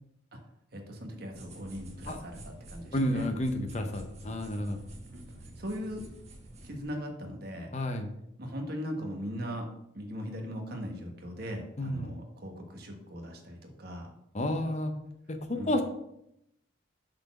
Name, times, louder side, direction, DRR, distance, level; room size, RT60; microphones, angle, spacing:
voice 1, 0.7-3.3 5.1-5.2 5.6-6.0 6.6-7.7 8.4-9.7 9.9-14.1 15.5-15.7, equal, 50° right, 3 dB, 1.3 m, -39 dB
sound 1, 1.3-6.8, right 1 dB, 35° right, 1.4 m, -48 dB
voice 2, 2.9-4.8 7.7-8.1 11.8-12.1 14.3-14.9 15.3-15.8, left 1 dB, 35° left, 6 dB, 0.7 m, -31 dB
6.5 x 4.2 x 5.9 m, 0.79 s
head